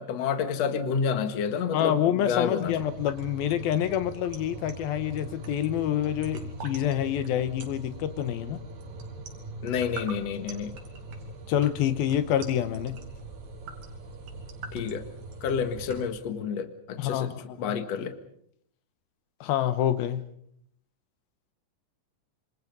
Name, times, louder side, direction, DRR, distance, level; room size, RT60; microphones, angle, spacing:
voice 1, 0.1-1.9 2.3-2.7 9.6-10.7 14.7-15.0 15.4-17.3 17.6-18.1, left 7 dB, 50° left, 8 dB, 2.5 m, -29 dB
voice 2, 1.7-8.6 11.5-13.0 17.0-17.8 19.4-20.2, left 11 dB, 80° left, 11 dB, 3.0 m, -27 dB
sound 1, 2.6-16.0, right 2 dB, 70° right, 4.3 m, -41 dB
27.0 x 26.0 x 5.5 m, 0.69 s
omnidirectional pair, 4.2 m